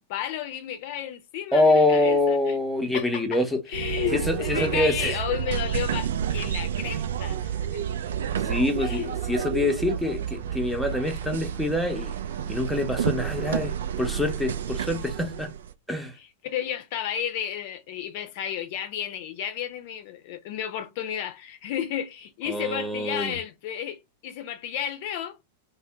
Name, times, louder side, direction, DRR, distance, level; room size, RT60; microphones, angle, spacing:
voice 1, 0.0-2.6 2.9-3.4 3.7-7.8 8.8-9.2 16.2-25.4, left 10 dB, 50° left, 0.6 m, -32 dB
voice 2, 1.5-3.6 4.1-5.2 8.4-12.1 12.5-15.5 15.9-16.1 22.5-23.4, left 2 dB, ahead, 0.7 m, -25 dB
sound 1, 3.7-15.7, right 9 dB, 65° right, 0.3 m, -30 dB
2.5 x 2.1 x 3.2 m
figure-of-eight pair, 95°, 0 cm